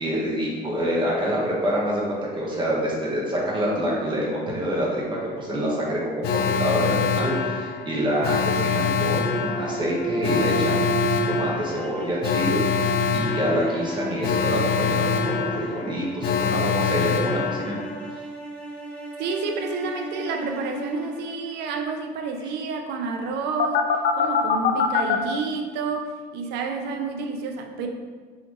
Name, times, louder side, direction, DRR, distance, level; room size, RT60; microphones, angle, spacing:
voice 1, 0.0-5.0 5.4-17.8 22.4-22.5, equal, 30° right, -4 dB, 1.2 m, -27 dB
Alarm, 6.2-18.1 23.6-25.2, left 6 dB, 70° left, 0.4 m, -24 dB
sound 1, 8.1-22.3, right 3 dB, 5° left, 0.8 m, -34 dB
voice 2, 19.2-23.8 24.2-27.9, right 4 dB, 80° right, 4 dB, 0.5 m, -29 dB
3.9 x 3.0 x 3.0 m, 1.5 s
cardioid pair, 110°, 17 cm